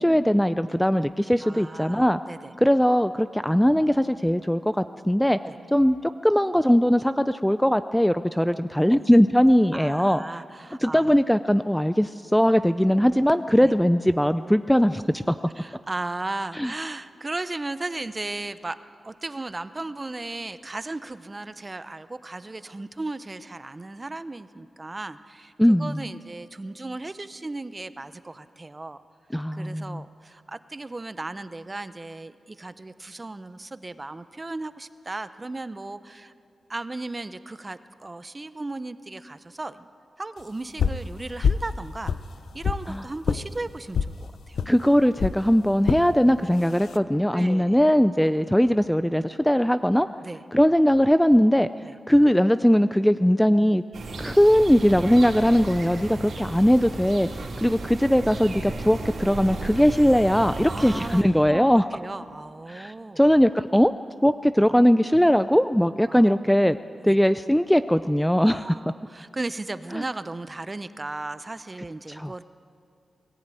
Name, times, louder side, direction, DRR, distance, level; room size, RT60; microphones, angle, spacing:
voice 1, 0.0-2.2 2.6-5.4 5.7-10.2 10.8-15.4 16.6-16.7 25.6-26.0 29.3-30.0 42.9-43.0 44.7-50.1 50.5-51.7 52.1-53.8 54.2-61.8 62.7-63.9 64.2-66.8 67.0-68.7 69.9-70.0 72.1-72.3, equal, 5° left, 12 dB, 0.4 m, -20 dB
voice 2, 1.4-2.5 5.5-5.6 9.7-11.2 13.6-13.7 15.6-18.8 19.0-29.0 29.5-36.3 36.7-39.9 40.2-42.1 42.5-44.6 47.3-47.8 50.2-50.4 51.8-51.9 56.1-56.2 60.7-63.2 66.1-66.3 67.0-67.2 68.6-72.4, right 2 dB, 25° right, 12 dB, 0.7 m, -36 dB
sound 1, 40.8-41.1 41.4-41.7 42.0-42.8 43.2-43.4 43.9-44.1 44.6-44.7 45.2-45.4 45.9-46.1 46.6-47.0, left 6 dB, 85° left, 0.6 m, -24 dB
sound 2, 53.9-61.2, right 2 dB, 75° right, 3.7 m, -35 dB
21.0 x 14.5 x 9.1 m, 2.6 s
wide cardioid pair, 100°, 0 cm